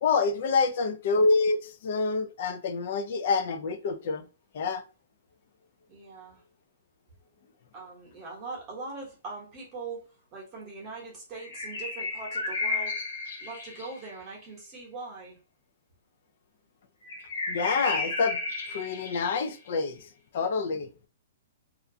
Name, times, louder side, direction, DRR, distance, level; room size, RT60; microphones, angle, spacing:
voice 1, 0.0-4.3 4.5-4.8 17.5-18.4 18.7-20.1 20.3-20.9, left 4 dB, 45° left, 0.4 m, -27 dB
voice 2, 5.9-6.4 7.7-13.0 13.4-15.4, right 3 dB, 20° right, 0.9 m, -41 dB
sound 1, 11.4-14.1 17.0-19.5, left 3 dB, 85° left, 0.9 m, -33 dB
2.4 x 2.2 x 2.7 m
hypercardioid pair, 170°, 0 cm